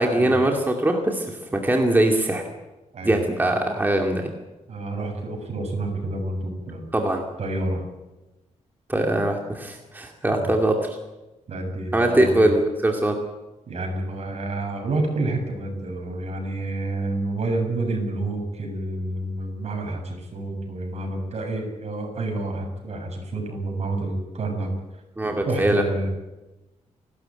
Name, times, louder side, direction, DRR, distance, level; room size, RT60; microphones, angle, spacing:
voice 1, 0.0-2.4 3.0-4.3 6.9-7.2 8.9-11.0 11.9-13.1 25.2-25.8, right 1 dB, 15° right, 2 dB, 2.4 m, -22 dB
voice 2, 4.7-6.8 7.4-7.8 10.3-10.5 11.5-12.5 13.7-24.7 25.4-26.1, right 2 dB, 55° right, 3 dB, 7.5 m, -29 dB
29.5 x 13.0 x 9.0 m, 1.1 s
wide cardioid pair, 120°, 13 cm